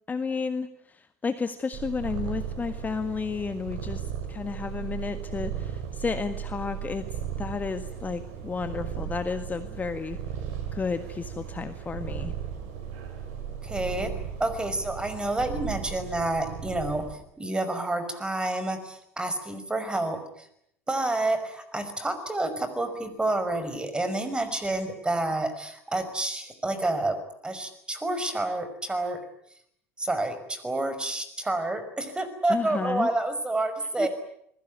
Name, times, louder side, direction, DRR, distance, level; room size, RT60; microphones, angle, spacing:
voice 1, 0.1-10.2 10.7-12.3 32.5-33.1 34.0-34.1, left 5 dB, 20° left, 9 dB, 1.7 m, -32 dB
Purr, 1.7-17.1, right 8 dB, 55° right, 6.3 m, -36 dB
voice 2, 13.6-14.1 14.4-20.5 20.9-27.2 27.4-29.2 30.0-34.1, right 2 dB, 10° right, 11 dB, 5.5 m, -29 dB
27.0 x 21.0 x 9.4 m, 0.72 s
figure-of-eight pair, 70°, 8 cm